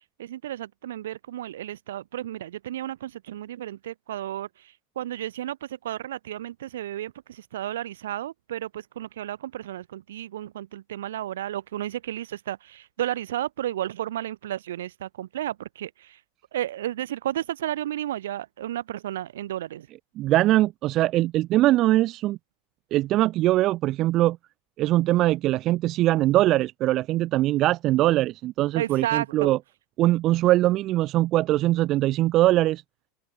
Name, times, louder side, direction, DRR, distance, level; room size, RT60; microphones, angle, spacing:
voice 1, 0.2-16.2 16.5-19.9 28.7-29.5, right 12 dB, 70° right, 1.8 m, -33 dB
voice 2, 20.2-22.4 22.9-24.4 24.8-29.6 30.0-32.8, right 16 dB, 45° right, 0.5 m, -22 dB
open air
figure-of-eight pair, 80°, 0 cm